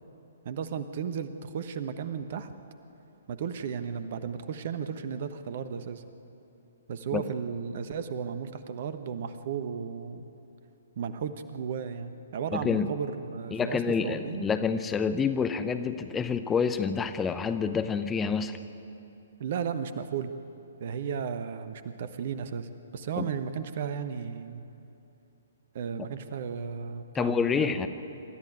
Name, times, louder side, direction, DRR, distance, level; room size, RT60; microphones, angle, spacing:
voice 1, 0.4-2.5 3.3-6.0 6.9-10.2 11.0-14.4 19.4-20.3 20.8-24.7 25.7-27.9, right 7 dB, 45° right, 11 dB, 1.2 m, -34 dB
voice 2, 12.5-12.9 13.5-18.6 23.2-23.3 27.1-27.9, left 6 dB, 10° left, 9 dB, 0.8 m, -28 dB
26.5 x 13.0 x 9.5 m, 2.8 s
figure-of-eight pair, 125°, 0 cm